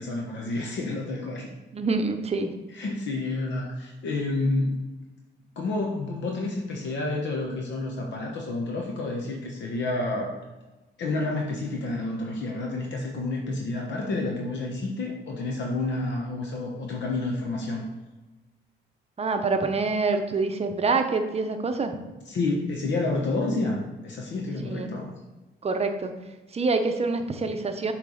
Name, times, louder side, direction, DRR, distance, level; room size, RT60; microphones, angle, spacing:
voice 1, 0.0-1.6 2.7-4.8 5.6-10.4 11.0-17.8 22.3-25.1, left 2 dB, 65° left, 0 dB, 1.0 m, -29 dB
voice 2, 1.7-2.5 19.2-22.0 24.6-24.9 25.6-26.1 26.5-27.9, right 3 dB, 30° right, 6 dB, 0.7 m, -26 dB
6.7 x 3.3 x 5.0 m, 1.1 s
cardioid pair, 90°, 20 cm